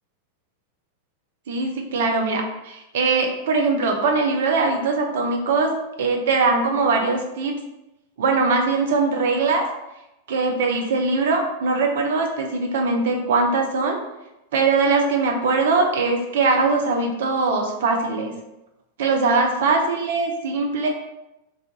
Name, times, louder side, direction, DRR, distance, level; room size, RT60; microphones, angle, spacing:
voice 1, 1.5-5.7 6.0-7.5 8.2-9.7 10.3-14.0 14.5-18.3 19.0-20.9, right 3 dB, 55° right, 2 dB, 0.5 m, -21 dB
2.5 x 2.3 x 3.8 m, 0.92 s
figure-of-eight pair, 90°, 0 cm